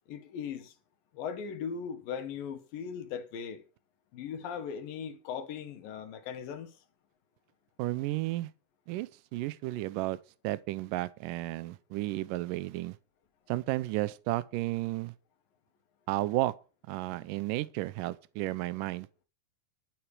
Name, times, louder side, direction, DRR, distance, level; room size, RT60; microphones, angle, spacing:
voice 1, 0.1-0.7 1.1-3.6 4.1-6.8, left 7 dB, 80° left, 3.2 m, -38 dB
voice 2, 7.8-8.5 8.9-10.2 10.4-13.0 13.5-15.1 16.1-16.5 16.9-19.1, right 17 dB, 80° right, 2.3 m, -33 dB
11.5 x 9.1 x 4.9 m
omnidirectional pair, 3.9 m